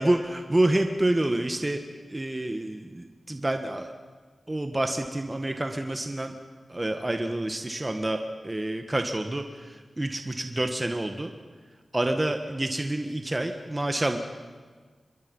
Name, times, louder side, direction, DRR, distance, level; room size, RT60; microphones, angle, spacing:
voice 1, 0.0-1.8 2.1-3.9 4.5-6.3 6.7-11.3 11.9-14.2, right 1 dB, 25° right, 5 dB, 1.6 m, -28 dB
25.0 x 22.0 x 5.5 m, 1.5 s
cardioid pair, 55°, 0 cm